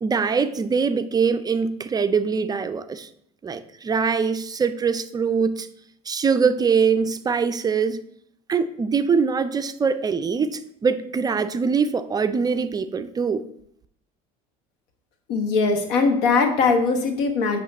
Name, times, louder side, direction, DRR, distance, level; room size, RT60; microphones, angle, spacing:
voice 1, 0.0-3.1 3.4-5.7 6.1-8.0 8.5-13.4, right 5 dB, 25° right, 0.4 m, -23 dB
voice 2, 15.3-17.6, left 4 dB, 80° left, 1.1 m, -20 dB
8.5 x 3.0 x 4.2 m
supercardioid pair, 95°, 16 cm